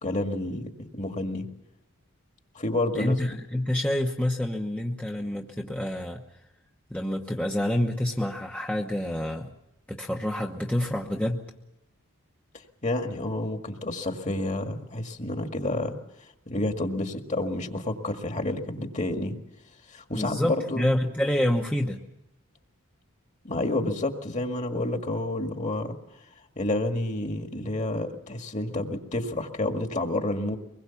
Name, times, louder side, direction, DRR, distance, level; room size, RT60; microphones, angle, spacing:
voice 1, 0.0-1.5 2.6-3.2 12.8-16.0 16.5-19.4 19.9-20.9 23.4-26.0 26.6-30.6, left 2 dB, 35° left, 5 dB, 1.9 m, -29 dB
voice 2, 2.9-6.2 6.9-9.5 9.9-11.4 20.1-22.0, left 1 dB, 5° left, 0 dB, 1.1 m, -27 dB
24.5 x 21.0 x 7.1 m, 0.85 s
head